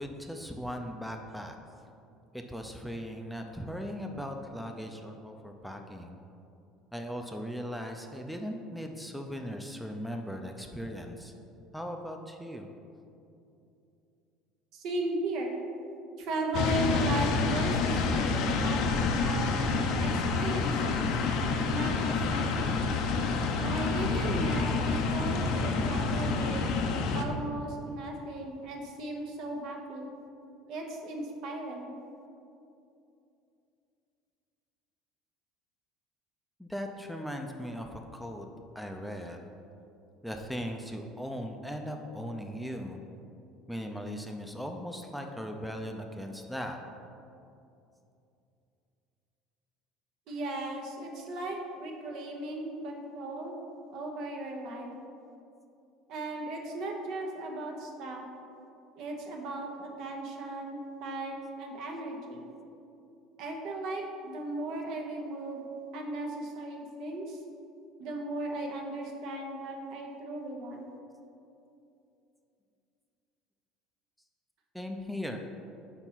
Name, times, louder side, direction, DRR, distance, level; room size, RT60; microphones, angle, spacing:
voice 1, 0.0-1.5 2.3-6.2 6.9-11.3 11.7-12.7 36.6-38.5 38.7-39.5 40.2-43.0 43.7-46.8 74.7-75.4, equal, ahead, 3 dB, 0.5 m, -38 dB
voice 2, 14.7-15.6 16.2-18.3 18.6-19.6 20.0-21.1 21.7-22.9 23.6-26.7 27.1-30.1 30.7-31.9 50.3-53.5 53.9-54.9 56.1-58.2 59.0-62.5 63.4-65.6 65.9-67.4 68.0-70.9, right 2 dB, 65° right, 1 dB, 1.0 m, -36 dB
sound 1, 16.5-27.2, left 4 dB, 65° left, 0.6 m, -28 dB
4.5 x 4.4 x 5.7 m, 2.7 s
hypercardioid pair, 80°, 0 cm